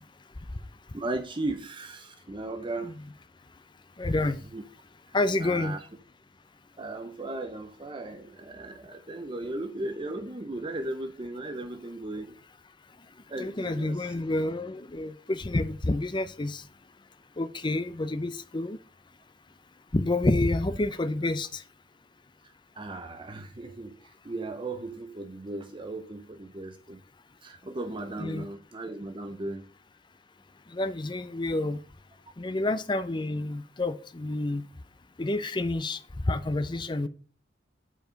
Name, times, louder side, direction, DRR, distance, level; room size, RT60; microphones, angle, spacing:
voice 1, 0.9-2.9 4.5-4.6 5.4-5.8 6.8-12.3 13.3-14.1 22.8-24.0 24.2-27.0 27.4-29.6, right 2 dB, 25° right, 0.7 m, -36 dB
voice 2, 4.0-4.4 5.1-5.8 13.3-16.6 17.4-18.8 19.9-21.6 28.2-28.5 30.7-31.8 32.4-34.7 35.2-36.0 36.3-37.1, left 2 dB, 25° left, 0.5 m, -28 dB
8.0 x 4.8 x 5.0 m
head